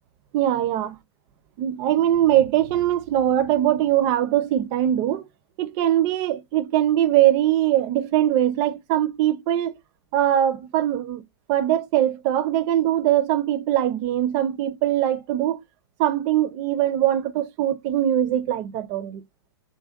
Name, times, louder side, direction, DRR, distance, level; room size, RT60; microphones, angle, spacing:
voice 1, 0.3-1.0 1.6-5.2 5.6-9.7 10.1-11.2 11.5-15.6 16.0-19.2, right 12 dB, 30° right, 0.4 m, -21 dB
2.6 x 2.1 x 3.4 m
figure-of-eight pair, 110°, 14 cm